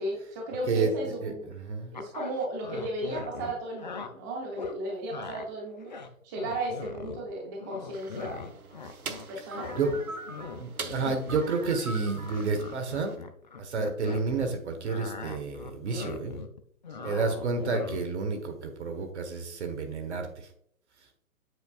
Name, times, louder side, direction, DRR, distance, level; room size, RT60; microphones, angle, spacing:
voice 1, 0.0-1.5 1.9-5.9 6.2-8.5 9.3-9.9, right 1 dB, 15° right, -1 dB, 0.6 m, -35 dB
voice 2, 1.2-1.9 9.8-9.9 10.6-13.2 13.6-16.4 17.0-20.5, right 4 dB, 50° right, 6 dB, 1.4 m, -30 dB
sound 1, 1.9-4.1 4.6-4.8 5.1-5.5 5.8-7.3 7.6-9.3 9.5-14.5 14.8-18.2, left 5 dB, 35° left, 0.4 m, -40 dB
sound 2, 7.9-13.2, right 4 dB, 80° right, 0.9 m, -42 dB
8.1 x 5.0 x 2.4 m, 0.68 s
figure-of-eight pair, 135°, 43 cm